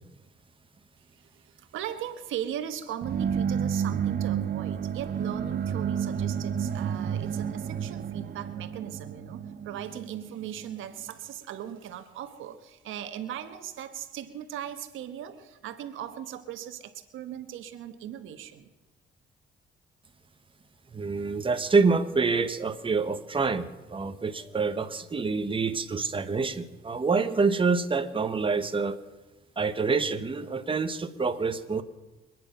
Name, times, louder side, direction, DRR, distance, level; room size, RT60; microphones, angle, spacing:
voice 1, 1.1-18.7, right 10 dB, 85° right, 9 dB, 1.3 m, -38 dB
sound 1, 3.0-10.8, right 8 dB, 50° right, 0.9 m, -31 dB
voice 2, 20.9-29.0 29.6-31.8, right 4 dB, 25° right, 8 dB, 1.3 m, -27 dB
25.5 x 9.8 x 5.6 m, 1.1 s
cardioid pair, 90°, 20 cm